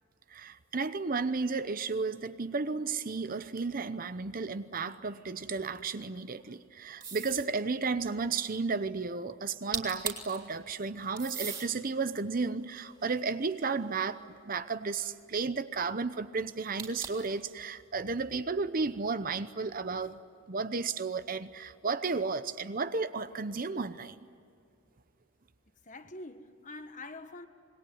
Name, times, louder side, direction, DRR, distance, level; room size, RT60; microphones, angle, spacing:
voice 1, 0.3-20.2 20.5-24.3, right 4 dB, 40° right, 0.8 m, -33 dB
sound 1, 7.0-7.5 9.5-9.6 9.7-10.4 11.2-11.7 12.4-13.8 16.8-17.3, right 5 dB, 20° right, 3.5 m, -38 dB
voice 2, 25.8-27.5, left 2 dB, 35° left, 1.5 m, -45 dB
26.5 x 21.5 x 9.4 m
head